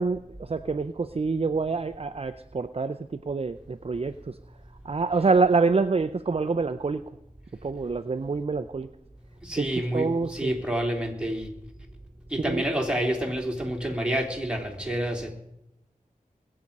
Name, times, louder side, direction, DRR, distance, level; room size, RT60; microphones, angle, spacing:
voice 1, 0.0-3.0 3.3-4.3 4.8-7.0 7.6-8.9 9.6-9.7 9.9-10.5 12.5-12.6, right 4 dB, 45° right, 11 dB, 0.5 m, -26 dB
voice 2, 9.4-11.5 12.3-15.3, right 1 dB, 5° right, 1 dB, 3.3 m, -28 dB
21.0 x 8.7 x 5.4 m, 0.83 s
wide cardioid pair, 65°, 15 cm